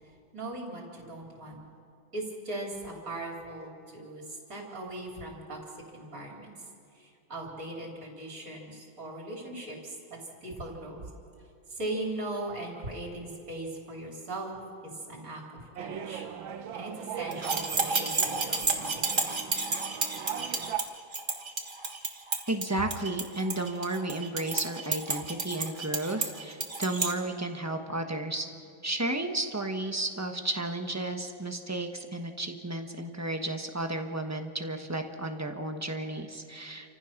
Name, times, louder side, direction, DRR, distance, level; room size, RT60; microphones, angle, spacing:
voice 1, 0.3-1.6 2.1-5.6 5.9-6.5 7.0-10.0 10.4-11.1 11.7-16.3 16.7-19.4, right 2 dB, 45° right, -1 dB, 4.0 m, -39 dB
sound 1, 15.8-20.8, right 9 dB, 85° right, 1.6 m, -39 dB
sound 2, 17.3-27.1, right 3 dB, 30° right, 1.5 m, -31 dB
voice 2, 22.5-28.5 28.8-36.9, right 2 dB, 10° right, 5 dB, 0.9 m, -33 dB
28.5 x 15.0 x 6.0 m, 2.6 s
omnidirectional pair, 2.1 m